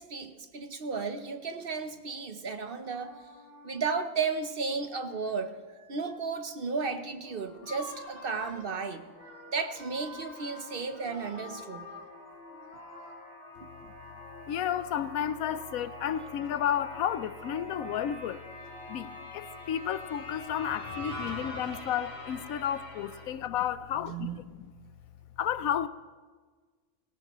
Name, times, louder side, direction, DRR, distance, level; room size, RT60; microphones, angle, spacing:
voice 1, 0.0-3.2 3.6-5.5 5.9-9.0 9.5-11.9 14.3-14.4 23.9-24.5, right 5 dB, 50° right, 0.9 m, -34 dB
sound 1, 2.7-4.0 5.1-5.4 7.4-13.1, left 2 dB, 65° left, 4.2 m, -48 dB
sound 2, 7.2-23.3, left 1 dB, 30° left, 3.6 m, -45 dB
voice 2, 14.5-18.4 18.9-24.5 25.4-25.9, left 10 dB, 90° left, 1.1 m, -32 dB
18.5 x 18.0 x 3.0 m
omnidirectional pair, 1.4 m